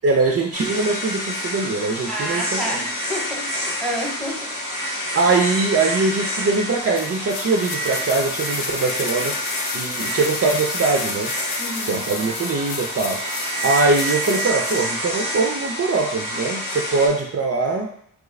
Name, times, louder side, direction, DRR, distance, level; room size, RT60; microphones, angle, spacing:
voice 1, 0.0-2.8 5.1-9.4 9.7-11.3 11.9-13.2 13.6-17.9, right 3 dB, 45° right, 1 dB, 0.5 m, -22 dB
sound 1, 0.5-17.1, equal, 80° left, 0.9 m, -28 dB
voice 2, 2.1-4.6 11.6-12.0, equal, ahead, 0 dB, 0.8 m, -30 dB
sound 2, 6.9-14.9 15.2-15.3, left 5 dB, 55° left, 0.5 m, -33 dB
3.2 x 2.4 x 3.1 m, 0.65 s
cardioid pair, 60°, 33 cm